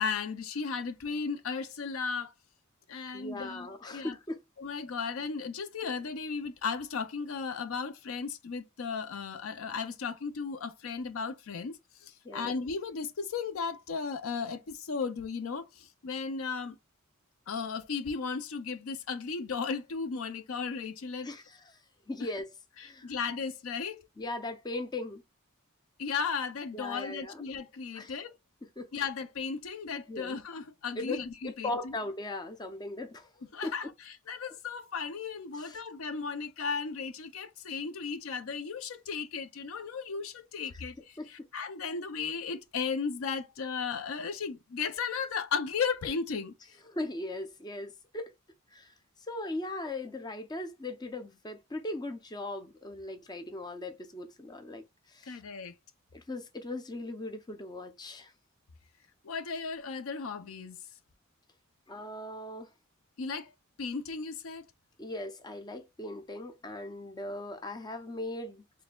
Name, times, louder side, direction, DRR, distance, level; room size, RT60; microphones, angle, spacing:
voice 1, 0.0-2.3 2.9-4.2 4.6-16.8 17.5-21.3 22.8-24.1 26.0-28.4 28.9-31.9 33.5-41.2 41.5-46.5 55.3-55.7 59.2-60.8 63.2-63.5 63.8-64.7, left 5 dB, 70° left, 0.5 m, -35 dB
voice 2, 3.1-4.4 12.2-12.5 21.2-21.8 22.1-22.5 22.8-23.2 24.2-25.2 26.7-27.4 27.9-28.1 28.8-28.9 30.1-30.3 31.0-33.9 35.5-35.8 41.2-41.5 46.9-48.3 48.7-48.9 49.3-55.4 56.1-58.3 61.9-62.7 65.0-68.6, left 2 dB, 20° left, 0.5 m, -39 dB
4.2 x 3.3 x 2.2 m
head